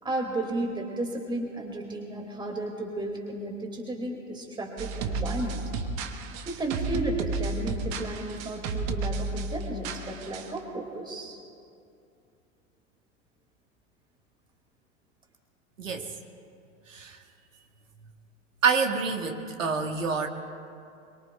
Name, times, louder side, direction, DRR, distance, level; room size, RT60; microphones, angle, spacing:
voice 1, 0.0-5.6 6.5-11.4, right 2 dB, 10° right, 1 dB, 2.3 m, -33 dB
sound 1, 4.8-10.6, right 3 dB, 55° right, 1.4 m, -33 dB
voice 2, 15.8-16.1 16.9-17.2 18.6-20.3, right 5 dB, 80° right, 4 dB, 1.7 m, -27 dB
25.0 x 23.0 x 2.3 m, 2.5 s
figure-of-eight pair, 85°, 38 cm